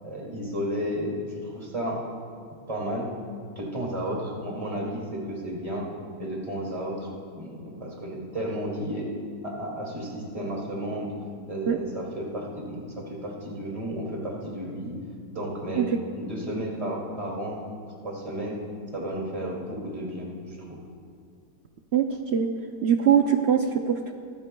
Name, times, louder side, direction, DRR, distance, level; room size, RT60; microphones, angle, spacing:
voice 1, 0.0-2.0 2.7-3.1 3.5-5.9 6.2-7.1 7.3-9.1 9.4-11.1 11.5-14.9 15.3-15.9 16.1-17.6 18.0-18.6 18.9-20.8, equal, 20° right, -3 dB, 2.4 m, -32 dB
voice 2, 21.9-22.5 22.8-24.1, right 8 dB, 75° right, 4 dB, 0.6 m, -22 dB
22.5 x 14.0 x 2.3 m, 2.2 s
omnidirectional pair, 1.9 m